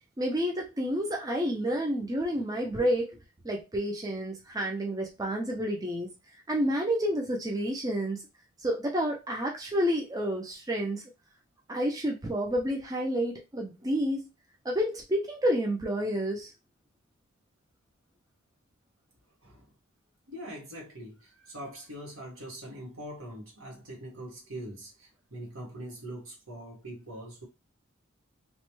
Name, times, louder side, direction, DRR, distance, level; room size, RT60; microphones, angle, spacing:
voice 1, 0.2-3.1 3.4-6.1 6.5-8.2 8.6-11.0 11.7-14.3 14.6-16.5, equal, 20° right, 0.5 m, -29 dB
voice 2, 19.4-19.7 20.3-27.5, right 1 dB, 70° right, 1.5 m, -43 dB
3.1 x 2.1 x 3.0 m
head